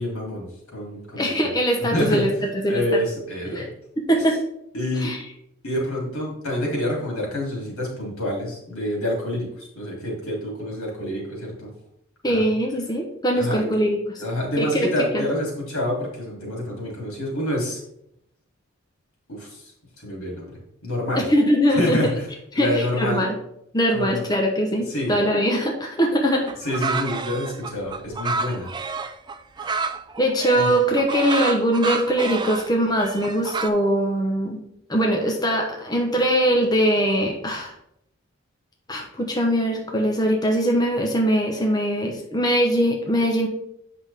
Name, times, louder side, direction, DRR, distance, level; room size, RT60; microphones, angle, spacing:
voice 1, 0.0-1.5 1.8-2.3 2.7-3.7 4.3-4.4 4.7-5.1 5.6-11.7 12.3-12.4 13.4-13.7 14.2-17.8 19.3-19.7 20.0-21.3 21.7-22.3 22.5-23.2 23.9-24.2 24.9-25.2 26.6-28.8 29.6-29.7 30.5-30.7, left 1 dB, 90° left, -2 dB, 3.2 m, -27 dB
voice 2, 1.2-2.8 3.5-3.6 4.1-4.4 5.0-5.2 12.2-14.2 14.6-14.9 15.1-15.2 21.1-22.0 22.5-23.4 23.7-26.5 30.2-34.6 34.9-37.7 38.9-43.5, equal, 20° left, 1 dB, 1.0 m, -21 dB
sound 1, 26.5-33.7, right 4 dB, 20° right, 0.4 m, -29 dB
7.9 x 6.0 x 3.5 m, 0.77 s
head